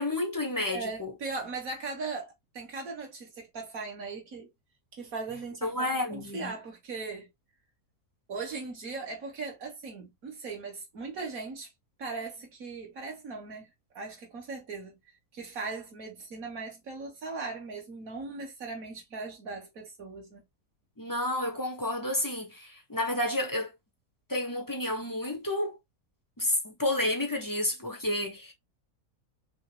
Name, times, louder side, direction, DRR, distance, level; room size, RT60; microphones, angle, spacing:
voice 1, 0.0-1.1 5.6-6.5 21.0-23.7 24.3-25.8 26.4-28.5, left 1 dB, 20° left, 0.6 m, -30 dB
voice 2, 0.7-4.5 4.9-7.3 8.3-11.7 12.0-13.7 14.0-15.0 15.3-20.4, right 4 dB, 60° right, 2.1 m, -39 dB
5.5 x 2.1 x 3.2 m
omnidirectional pair, 1.6 m